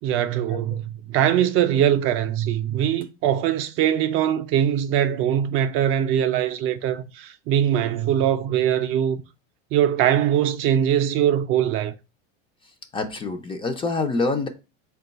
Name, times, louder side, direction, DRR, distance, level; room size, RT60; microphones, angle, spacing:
voice 1, 0.0-9.2 9.7-11.9, right 10 dB, 45° right, 0.4 m, -22 dB
voice 2, 12.9-14.5, left 3 dB, 20° left, 0.4 m, -26 dB
3.8 x 2.3 x 3.9 m
supercardioid pair, 125°, 29 cm